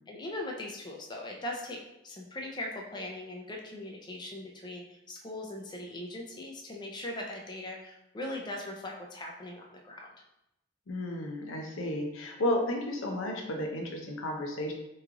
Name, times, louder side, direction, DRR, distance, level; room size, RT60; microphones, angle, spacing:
voice 1, 0.1-1.8 2.0-10.1, left 1 dB, 20° left, 0 dB, 0.4 m, -40 dB
voice 2, 10.9-14.7, left 1 dB, 85° left, 2 dB, 0.6 m, -32 dB
3.1 x 2.4 x 3.6 m, 0.85 s
head